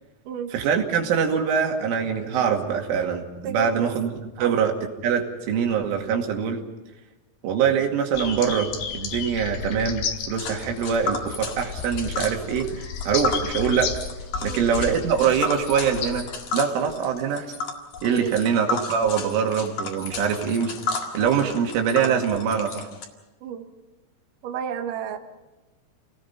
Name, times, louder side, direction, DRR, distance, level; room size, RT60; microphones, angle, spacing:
voice 1, 0.5-4.1 4.4-4.7 5.0-6.6 7.4-13.9 14.4-16.3 16.5-17.5 18.0-20.7 21.1-22.9, right 7 dB, 85° right, 2 dB, 4.7 m, -24 dB
voice 2, 3.4-3.9 4.4-4.7 14.4-14.7 18.1-18.4 23.4-23.7 24.4-25.2, right 8 dB, 65° right, 5 dB, 2.2 m, -31 dB
sound 1, 8.1-16.4, left 6 dB, 65° left, 3.6 m, -33 dB
Tick, 10.4-23.0, left 4 dB, 50° left, 2.7 m, -33 dB
29.5 x 19.0 x 5.7 m, 1.1 s
omnidirectional pair, 5.5 m